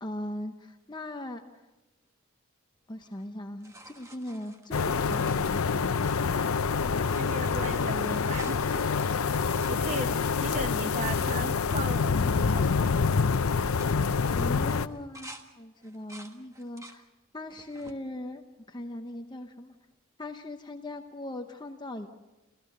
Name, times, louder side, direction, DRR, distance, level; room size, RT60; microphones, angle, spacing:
voice 1, 0.0-1.7 2.9-6.1 14.3-17.1 17.3-19.7 20.2-22.1, left 1 dB, 20° left, 5 dB, 0.8 m, -39 dB
sound 1, 3.0-6.6 6.9-11.3 11.8-11.9 12.1-12.6 12.9-13.2 13.6-15.4 15.8-17.0 17.5-18.0 18.6-19.4 21.0-21.1, right 1 dB, 15° right, 1.4 m, -51 dB
sound 2, 4.7-14.9, left 5 dB, 80° left, 0.6 m, -26 dB
voice 2, 7.2-8.9 9.7-10.1 10.4-13.1, right 2 dB, 35° right, 10 dB, 0.9 m, -37 dB
28.5 x 15.0 x 6.6 m, 1.1 s
head